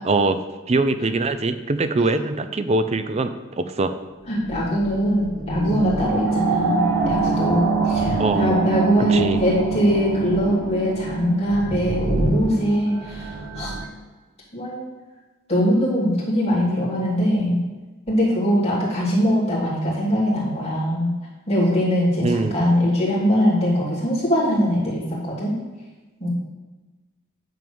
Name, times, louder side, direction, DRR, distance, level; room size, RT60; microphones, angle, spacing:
voice 1, 0.0-0.4 0.7-3.9 8.2-8.5 9.1-9.4 22.2-22.6, right 3 dB, 30° right, 10 dB, 0.4 m, -22 dB
voice 2, 4.3-13.7 14.5-14.8 15.5-17.6 18.1-21.1 21.5-25.5 26.2-26.3, equal, 30° left, -6 dB, 3.0 m, -22 dB
sound 1, 4.3-13.9, right 3 dB, 70° right, 1.5 m, -24 dB
9.2 x 3.7 x 6.9 m, 1.2 s
head